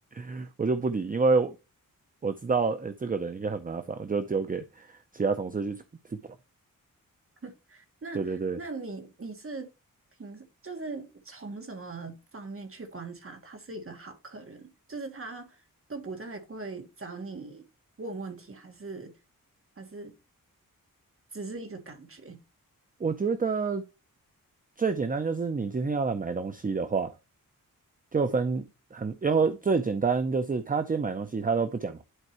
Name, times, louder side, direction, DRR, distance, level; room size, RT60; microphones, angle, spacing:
voice 1, 0.1-1.6 2.2-5.8 6.1-6.2 8.1-8.6 23.0-23.8 24.8-27.1 28.1-32.0, right 4 dB, 25° right, 0.6 m, -28 dB
voice 2, 7.4-9.7 10.2-15.6 15.9-17.6 18.0-19.1 19.8-20.1 21.3-22.4, right 3 dB, 40° right, 1.6 m, -40 dB
11.0 x 4.6 x 3.0 m
wide cardioid pair, 140°, 35 cm